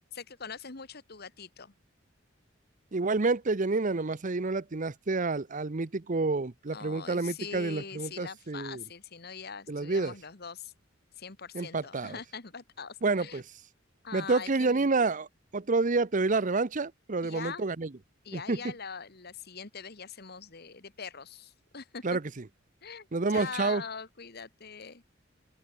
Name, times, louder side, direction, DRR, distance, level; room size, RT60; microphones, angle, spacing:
voice 1, 0.0-1.7 6.7-10.7 11.1-13.4 14.0-14.9 17.2-17.6 18.2-22.2 22.8-25.0, left 5 dB, 55° left, 1.7 m, -42 dB
voice 2, 2.9-8.8 9.7-10.1 11.5-12.2 13.0-13.4 14.1-15.3 15.5-17.9 18.3-18.6 22.0-22.2 23.1-23.8, right 3 dB, 40° right, 0.8 m, -28 dB
open air
head